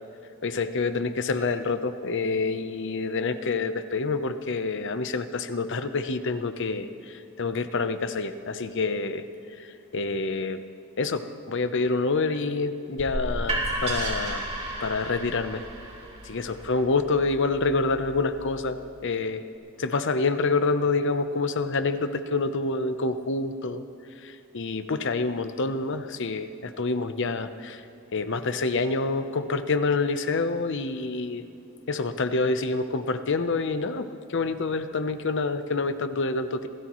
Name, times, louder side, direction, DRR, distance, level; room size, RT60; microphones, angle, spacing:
voice 1, 0.4-6.9 7.4-9.2 9.9-10.6 11.0-14.4 14.8-15.6 16.3-19.4 19.8-23.8 24.5-27.8 28.1-31.4 31.9-34.1 34.3-36.7, left 3 dB, 60° left, 10 dB, 0.8 m, -27 dB
sound 1, 13.0-18.8, right 1 dB, 30° right, 3.0 m, -33 dB
27.0 x 17.0 x 3.1 m, 2.7 s
head